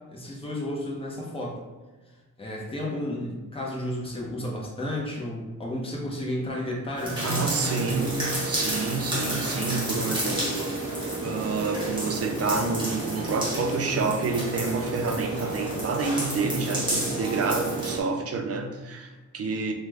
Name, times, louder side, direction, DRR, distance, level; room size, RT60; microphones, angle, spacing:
voice 1, 0.1-1.6 2.4-7.5, left 1 dB, 15° left, -2 dB, 0.7 m, -32 dB
sound 1, 7.0-18.0, right 1 dB, 15° right, 1.2 m, -30 dB
voice 2, 7.2-19.7, right 4 dB, 50° right, 4 dB, 0.4 m, -28 dB
3.0 x 2.1 x 3.4 m, 1.2 s
wide cardioid pair, 95°, 32 cm